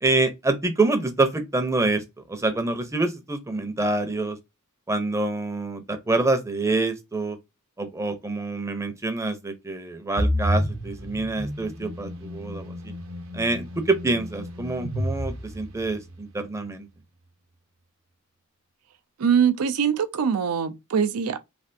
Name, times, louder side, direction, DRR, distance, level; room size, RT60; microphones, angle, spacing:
voice 1, 0.0-4.4 4.9-7.4 7.8-12.9 13.3-16.9, right 2 dB, 15° right, 0.6 m, -26 dB
sound 1, 10.2-16.1, equal, 65° right, 0.8 m, -30 dB
voice 2, 19.2-21.4, right 7 dB, 90° right, 0.5 m, -23 dB
3.3 x 2.4 x 2.5 m
head